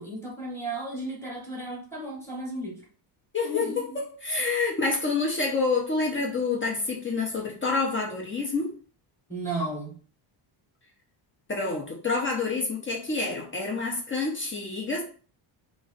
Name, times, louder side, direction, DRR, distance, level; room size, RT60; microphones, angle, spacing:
voice 1, 0.0-2.8 3.4-4.0 9.3-9.9, right 1 dB, 5° left, -3 dB, 1.0 m, -34 dB
voice 2, 3.3-8.7 11.5-15.0, left 3 dB, 25° left, -1 dB, 0.6 m, -28 dB
3.0 x 2.5 x 3.9 m, 0.40 s
cardioid pair, 155°, 48 cm